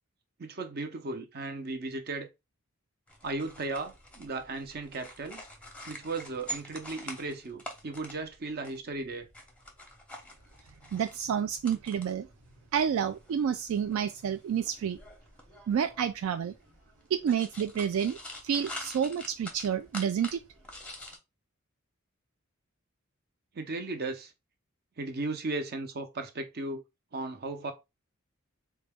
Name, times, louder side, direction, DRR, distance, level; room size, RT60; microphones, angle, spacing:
voice 1, 0.4-2.3 3.2-5.4 5.8-9.3 23.5-24.3 25.0-26.8 27.1-27.7, right 3 dB, 45° right, 0.6 m, -36 dB
sound 1, 3.1-21.2, equal, 5° left, 0.7 m, -47 dB
voice 2, 10.9-12.3 12.7-15.0 15.7-16.5 17.1-18.2 18.4-20.4, right 8 dB, 75° right, 0.3 m, -29 dB
3.9 x 2.3 x 3.4 m
head